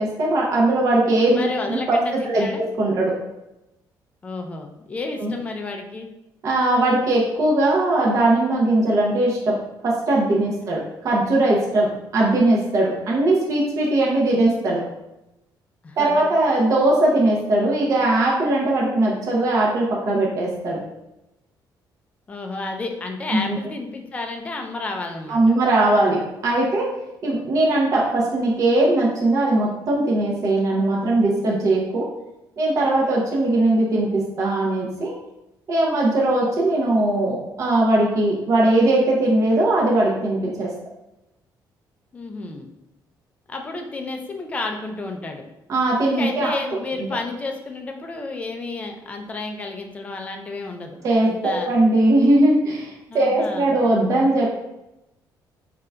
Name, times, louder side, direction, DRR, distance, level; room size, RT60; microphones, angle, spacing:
voice 1, 0.0-2.0 2.3-3.1 5.2-5.3 6.4-9.5 9.8-11.9 12.1-14.8 16.0-20.8 23.3-23.6 25.3-26.9 27.2-32.1 32.6-35.1 35.7-40.7 45.7-46.5 51.0-54.5, right 2 dB, 45° right, -3 dB, 0.7 m, -20 dB
voice 2, 1.3-2.6 4.2-6.1 15.8-16.2 22.3-25.5 42.1-42.7 43.5-45.4 46.0-51.7 53.1-53.8, left 3 dB, 15° left, 3 dB, 0.3 m, -31 dB
3.8 x 3.5 x 2.2 m, 0.91 s
cardioid pair, 175°, 8 cm